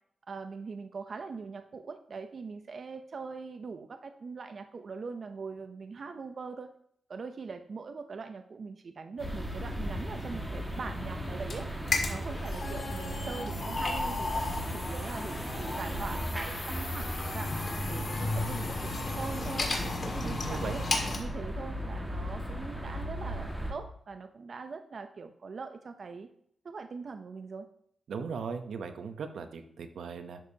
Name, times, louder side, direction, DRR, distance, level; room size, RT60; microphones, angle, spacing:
voice 1, 0.3-6.7 7.1-11.7 12.1-17.5 17.9-19.7 20.0-26.3 26.6-27.7, right 4 dB, 55° right, 7 dB, 0.5 m, -42 dB
sound 1, 9.2-21.2, left 2 dB, 50° left, 1.9 m, -35 dB
sound 2, 9.2-23.7, equal, 5° right, 1.7 m, -37 dB
voice 2, 20.2-20.8 28.1-30.4, right 5 dB, 85° right, 8 dB, 0.8 m, -38 dB
11.0 x 7.2 x 2.8 m, 0.70 s
wide cardioid pair, 100°, 0 cm